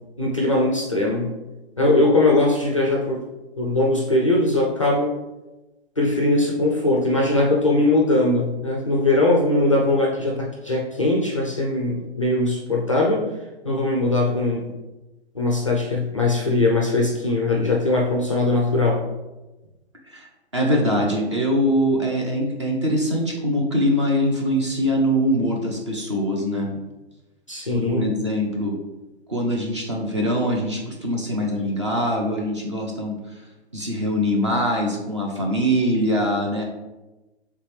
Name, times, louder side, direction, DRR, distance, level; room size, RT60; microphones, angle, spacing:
voice 1, 0.2-1.3 1.8-3.2 3.6-5.1 6.0-13.3 13.6-14.7 15.3-19.0 27.5-28.1, left 2 dB, 30° left, -1 dB, 0.4 m, -20 dB
voice 2, 20.1-26.7 27.7-28.8 29.3-33.4 33.7-36.6, equal, 30° right, -1 dB, 0.5 m, -23 dB
3.4 x 3.2 x 4.8 m, 1.1 s
hypercardioid pair, 175°, 33 cm